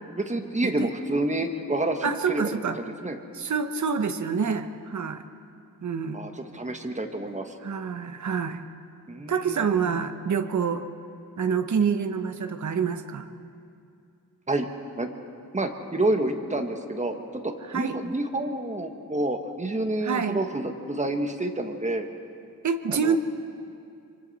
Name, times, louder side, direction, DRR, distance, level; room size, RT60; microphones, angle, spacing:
voice 1, 0.1-3.2 6.1-7.5 9.1-9.9 14.5-14.7 15.0-15.1 15.5-22.1 22.9-23.2, right 1 dB, 20° right, 5 dB, 1.2 m, -29 dB
voice 2, 2.0-2.8 3.3-5.2 5.8-6.2 7.6-8.6 9.3-10.9 11.4-13.3 17.7-18.0 20.0-20.4 22.6-23.2, right 6 dB, 50° right, 8 dB, 1.0 m, -27 dB
26.0 x 24.5 x 4.1 m, 2.5 s
wide cardioid pair, 160°, 37 cm